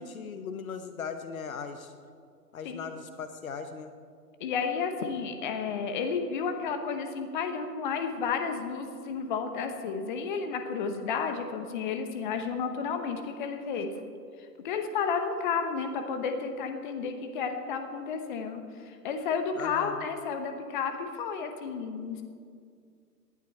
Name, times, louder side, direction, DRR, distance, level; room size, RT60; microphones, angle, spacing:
voice 1, 0.0-1.9 2.5-3.9 19.6-20.0, left 6 dB, 55° left, 9 dB, 1.0 m, -38 dB
voice 2, 4.4-13.9 14.6-22.2, left 5 dB, 30° left, 7 dB, 1.1 m, -32 dB
18.5 x 11.0 x 4.4 m, 2.2 s
figure-of-eight pair, 130°, 49 cm